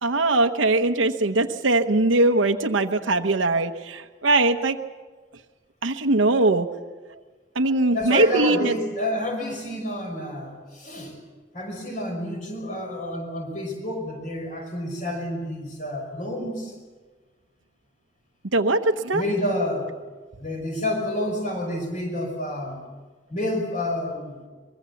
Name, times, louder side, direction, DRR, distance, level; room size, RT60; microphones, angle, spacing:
voice 1, 0.0-4.8 5.8-6.7 7.5-8.7 18.5-19.2, right 2 dB, 85° right, 5 dB, 1.0 m, -21 dB
voice 2, 7.9-11.1 11.5-16.7 19.1-19.9 20.4-22.8 23.3-24.5, left 1 dB, 40° left, 2 dB, 5.6 m, -29 dB
24.0 x 21.5 x 7.1 m, 1.4 s
head